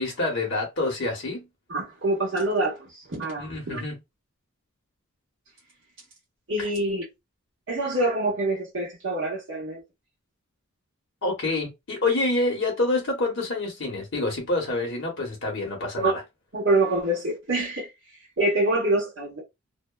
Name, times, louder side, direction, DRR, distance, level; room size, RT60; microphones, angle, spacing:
voice 1, 0.0-1.5 3.4-3.9 6.6-6.7 11.2-16.2, left 2 dB, 60° left, 1.0 m, -27 dB
voice 2, 1.7-3.8 6.5-7.0 7.7-9.8 16.0-16.1 16.5-17.9 18.4-19.4, right 2 dB, 60° right, 1.0 m, -25 dB
2.8 x 2.0 x 2.2 m
head